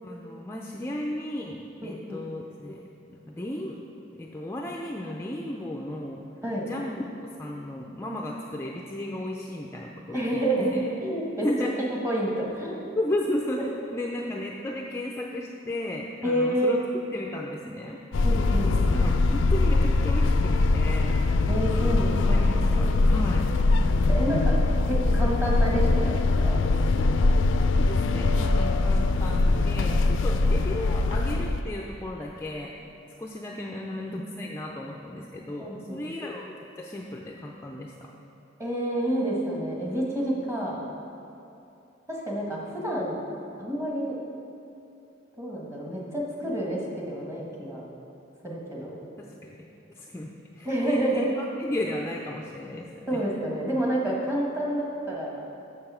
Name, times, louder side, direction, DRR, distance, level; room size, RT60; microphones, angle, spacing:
voice 1, 0.0-3.8 4.1-6.2 6.7-10.9 11.4-11.7 12.9-16.8 17.1-18.0 18.6-21.5 22.3-23.5 27.8-32.7 33.2-38.1 49.2-49.7 50.0-53.2, left 1 dB, 15° left, -1 dB, 0.4 m, -34 dB
voice 2, 1.8-2.2 6.4-6.6 10.1-10.7 11.0-11.5 12.0-12.8 16.2-16.8 18.2-18.7 21.5-22.4 22.7-22.9 23.9-24.5 24.9-26.6 35.6-36.1 38.6-40.9 42.1-43.2 43.6-44.1 45.4-47.8 48.4-48.9 50.6-51.3 53.1-55.4, right 1 dB, 15° right, -4 dB, 1.5 m, -29 dB
sound 1, 18.1-31.6, left 3 dB, 90° left, 0.4 m, -22 dB
6.9 x 6.8 x 5.6 m, 2.7 s
head